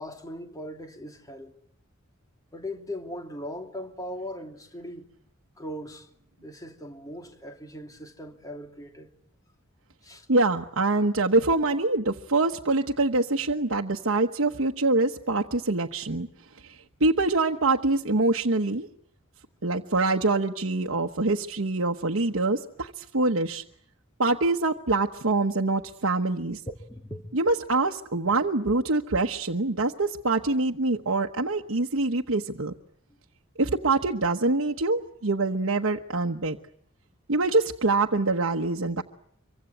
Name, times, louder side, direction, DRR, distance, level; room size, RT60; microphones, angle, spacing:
voice 1, 0.0-1.5 2.5-5.1 5.6-6.1 6.4-9.1 10.0-10.3 26.9-27.3, left 1 dB, 15° left, 2.9 m, -39 dB
voice 2, 10.3-16.3 16.6-18.9 19.6-23.6 24.2-26.6 27.3-32.7 33.6-36.6 37.3-39.0, right 2 dB, 70° right, 1.2 m, -25 dB
26.0 x 24.5 x 9.1 m
head